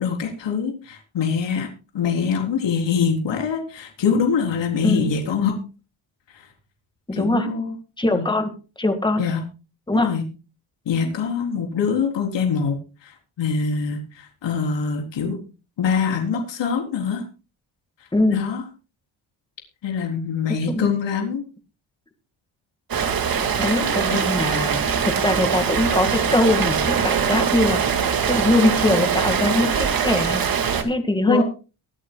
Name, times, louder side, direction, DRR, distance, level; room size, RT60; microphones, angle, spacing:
voice 1, 0.0-1.7 1.9-5.5 6.3-6.5 7.1-7.7 8.1-8.3 9.2-9.4 9.9-10.3 10.9-15.4 15.8-17.2 18.3-18.6 19.8-21.4 23.8-24.2 31.3-31.4, left 6 dB, 70° left, 2 dB, 3.9 m, -24 dB
voice 2, 7.1-7.5 8.0-8.5 8.8-9.2 9.9-10.1 11.0-11.2 18.1-18.4 20.7-20.9 23.6-31.4, left 1 dB, 10° left, 7 dB, 1.9 m, -22 dB
Rain, 22.9-30.8, right 7 dB, 50° right, 2.2 m, -22 dB
23.0 x 9.2 x 2.3 m, 0.32 s
cardioid pair, 150°, 45 cm